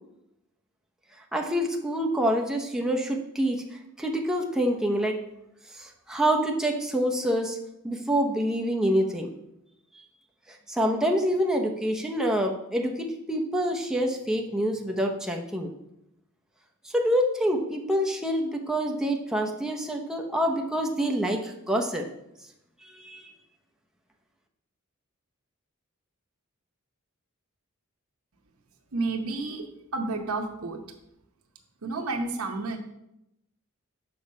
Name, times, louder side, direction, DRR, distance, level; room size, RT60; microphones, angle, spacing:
voice 1, 1.3-5.2 5.7-7.6 7.8-9.3 10.5-15.7 16.8-22.0 22.9-23.2, equal, 5° right, 0 dB, 0.7 m, -26 dB
voice 2, 28.9-29.7 29.9-30.8 31.8-32.8, right 3 dB, 75° right, 5 dB, 0.9 m, -30 dB
6.9 x 4.7 x 5.4 m, 0.84 s
head